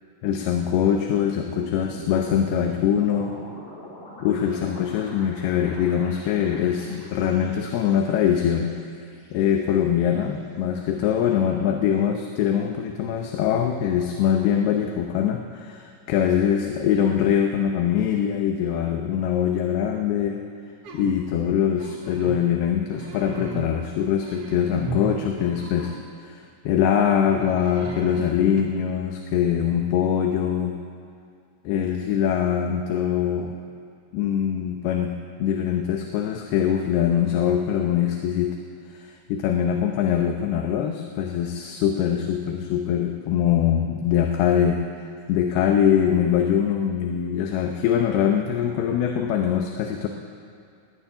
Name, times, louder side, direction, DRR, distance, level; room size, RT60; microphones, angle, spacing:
voice 1, 0.2-3.3 4.2-8.7 9.3-20.4 20.9-25.9 26.2-30.8 31.7-33.6 34.1-35.1 35.4-38.6 38.9-50.1, left 9 dB, 90° left, 3 dB, 2.9 m, -23 dB
sound 1, 1.9-10.2, left 1 dB, 65° left, 5.4 m, -44 dB
sound 2, 20.8-21.2 21.7-22.5 22.8-23.8 24.2-26.1 27.2-28.6, right 5 dB, 75° right, 1.3 m, -36 dB
18.5 x 7.2 x 10.0 m, 2.4 s
omnidirectional pair, 4.4 m